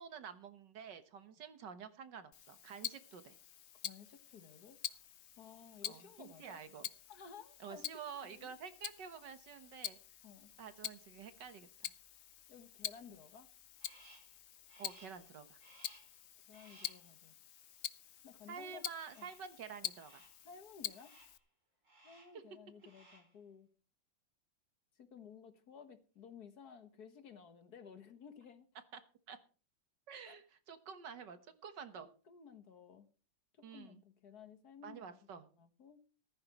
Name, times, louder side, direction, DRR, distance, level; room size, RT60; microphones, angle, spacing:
voice 1, 0.0-3.4 5.8-6.9 7.6-10.0 10.6-11.9 14.8-15.6 18.5-20.2 22.3-22.4 28.9-29.0 29.3-29.4 30.1-32.1 33.6-34.0 34.8-35.5, right 6 dB, 65° right, 11 dB, 1.9 m, -49 dB
Tick-tock, 2.3-21.4, left 10 dB, 75° left, 0.6 m, -47 dB
voice 2, 3.8-5.0 5.4-6.6 7.1-7.9 8.2-8.5 10.2-10.5 12.5-13.5 16.5-17.4 18.2-18.8 19.1-19.3 20.4-21.1 22.0-23.7 25.0-28.7 30.3-30.4 31.9-33.1 33.7-35.2 35.6-36.0, left 6 dB, 55° left, 10 dB, 1.8 m, -55 dB
Crow, 13.8-14.4 14.7-15.3 15.6-16.2 16.5-17.1 19.0-19.5 19.9-20.4 20.9-21.4 21.8-22.4 22.7-23.4, right 1 dB, 40° right, 6.0 m, -62 dB
14.5 x 14.5 x 3.0 m, 0.37 s
omnidirectional pair, 2.0 m